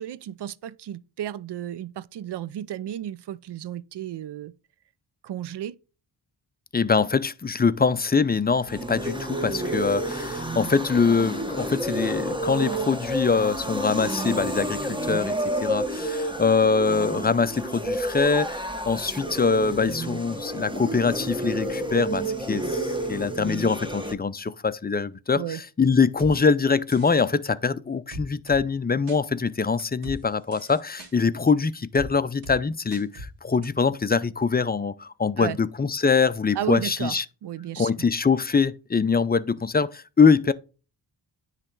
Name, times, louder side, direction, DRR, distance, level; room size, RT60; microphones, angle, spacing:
voice 1, 0.0-4.5 5.2-5.8 25.3-25.6 35.4-35.6 36.5-37.9, right 11 dB, 60° right, 0.6 m, -33 dB
voice 2, 6.7-37.2 37.8-40.5, left 5 dB, 20° left, 0.5 m, -23 dB
sound 1, 8.5-24.1, right 1 dB, 10° right, 1.1 m, -30 dB
sound 2, 26.2-26.3 26.9-27.3 28.1-28.6 29.1-29.2 29.8-30.2 30.5-31.1 32.0-32.1 32.4-32.6 32.9-33.3 33.6-33.7, equal, 75° right, 1.8 m, -38 dB
9.8 x 3.3 x 3.9 m
cardioid pair, 50°, 47 cm